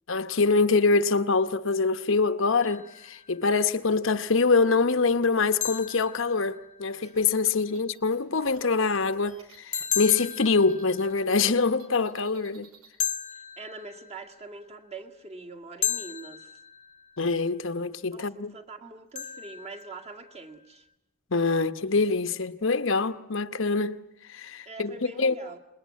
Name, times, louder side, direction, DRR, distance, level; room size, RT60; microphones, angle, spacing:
voice 1, 0.1-12.7 17.2-18.5 21.3-24.0 24.3-25.3, left 4 dB, 65° left, 1.0 m, -25 dB
sound 1, 2.6-3.4 5.6-7.0 9.7-11.5 13.0-14.4 15.8-17.2 19.2-20.4, left 9 dB, 35° left, 1.0 m, -35 dB
sound 2, 7.0-11.2 11.5-12.9, right 4 dB, 85° right, 5.5 m, -54 dB
voice 2, 13.6-16.5 18.1-20.9 24.7-25.6, right 3 dB, 30° right, 2.0 m, -43 dB
27.0 x 21.0 x 9.6 m
head